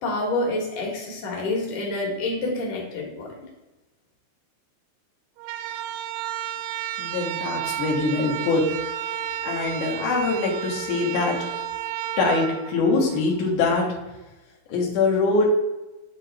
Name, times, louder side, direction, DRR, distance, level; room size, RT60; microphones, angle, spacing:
voice 1, 0.0-3.3, left 2 dB, 60° left, -2 dB, 2.5 m, -27 dB
sound 1, 5.4-13.5, right 10 dB, 85° right, 2.8 m, -32 dB
voice 2, 7.0-8.6 9.1-11.4 12.2-13.9 14.7-15.5, left 3 dB, 85° left, -3 dB, 1.7 m, -23 dB
9.9 x 3.8 x 3.4 m, 1.1 s
omnidirectional pair, 5.5 m